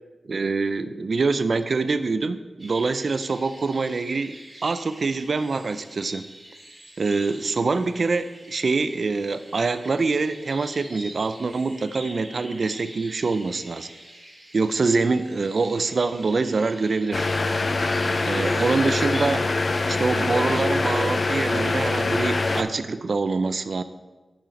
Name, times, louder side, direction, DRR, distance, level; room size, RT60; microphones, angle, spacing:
voice 1, 0.3-4.4 4.6-6.3 7.0-13.9 14.5-17.3 18.2-19.5 19.9-23.8, right 4 dB, 65° right, 11 dB, 0.4 m, -25 dB
sound 1, 2.6-21.7, right 1 dB, 35° right, 2.5 m, -46 dB
sound 2, 17.1-22.6, left 3 dB, 50° left, 0.5 m, -24 dB
7.1 x 5.5 x 5.2 m, 1.2 s
cardioid pair, 65°, 0 cm